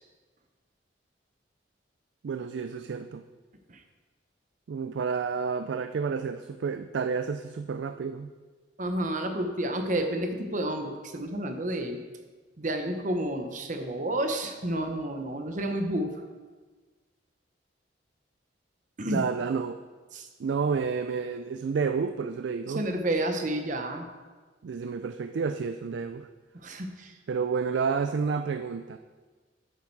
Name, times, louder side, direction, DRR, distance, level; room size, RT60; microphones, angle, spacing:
voice 1, 2.2-3.2 4.7-8.3 19.1-19.8 20.4-22.9 24.6-26.3 27.3-29.0, right 5 dB, 70° right, 9 dB, 0.4 m, -30 dB
voice 2, 8.8-12.0 12.6-16.1 19.0-19.2 20.1-20.3 22.7-24.1 26.6-27.1, right 1 dB, 45° right, 5 dB, 0.9 m, -30 dB
8.6 x 8.5 x 4.6 m, 1.4 s
head